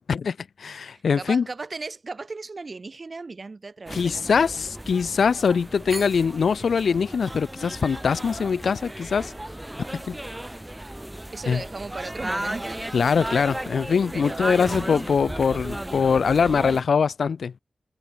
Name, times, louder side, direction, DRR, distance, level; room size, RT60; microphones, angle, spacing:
voice 1, 0.1-1.4 3.9-9.3 9.9-10.2 11.5-11.6 12.9-17.5, left 6 dB, 90° left, 0.4 m, -23 dB
voice 2, 0.9-4.7 6.5-6.6 9.8-10.0 10.8-10.9 11.3-12.9 14.1-14.8, right 3 dB, 40° right, 2.2 m, -37 dB
sound 1, 3.9-16.8, right 1 dB, 10° right, 0.6 m, -35 dB
wide cardioid pair, 125°, 0 cm